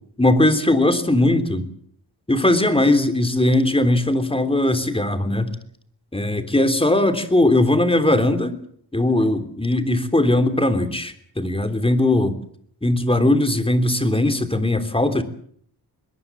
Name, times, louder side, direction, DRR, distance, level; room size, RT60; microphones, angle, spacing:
voice 1, 0.2-1.7 2.3-5.5 6.1-8.5 8.9-12.4 12.8-15.2, left 1 dB, 15° left, 9 dB, 3.3 m, -19 dB
23.5 x 21.5 x 7.4 m, 0.62 s
wide cardioid pair, 105°, 41 cm